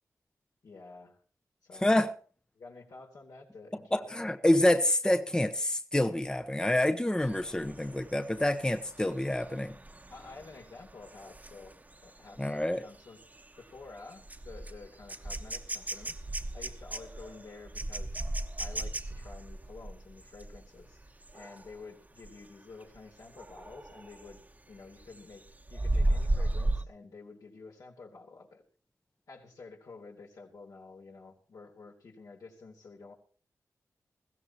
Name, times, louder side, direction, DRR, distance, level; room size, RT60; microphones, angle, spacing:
voice 1, 0.6-1.2 1.6-1.9 2.5-4.1 10.1-11.7 12.0-13.2 13.6-18.2 18.6-21.0 21.3-24.4 24.7-28.6 29.3-33.1, left 3 dB, 80° left, 0 dB, 3.8 m, -50 dB
voice 2, 1.8-2.1 3.9-9.7 12.4-12.8, left 1 dB, 15° left, 9 dB, 0.9 m, -27 dB
sound 1, 7.2-21.8 22.2-22.5 22.8-24.5 24.8-26.8, right 1 dB, 25° right, 1.2 m, -36 dB
21.0 x 15.5 x 3.0 m, 0.41 s
cardioid pair, 60°, 6 cm